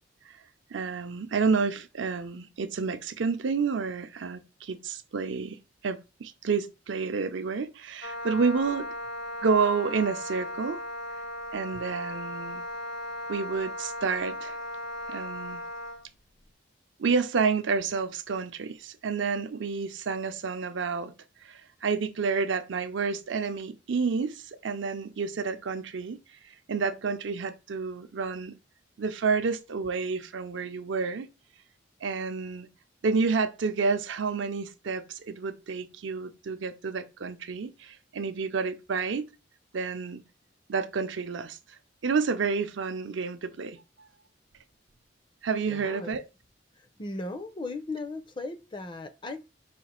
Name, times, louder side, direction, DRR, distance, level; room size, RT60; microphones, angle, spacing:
voice 1, 0.7-5.6 5.8-8.9 9.4-10.8 11.5-12.6 13.3-14.6 15.1-15.6 17.0-21.1 21.4-26.2 26.4-28.5 29.0-31.3 32.0-32.7 33.0-39.2 39.7-40.2 40.7-41.6 42.0-44.1 45.4-46.2, right 5 dB, 75° right, 0.5 m, -29 dB
Wind instrument woodwind instrument, 8.0-16.0, left 1 dB, 65° left, 1.1 m, -37 dB
voice 2, 45.7-46.2 46.8-49.4, left 2 dB, 25° left, 0.5 m, -37 dB
5.0 x 2.4 x 4.2 m
head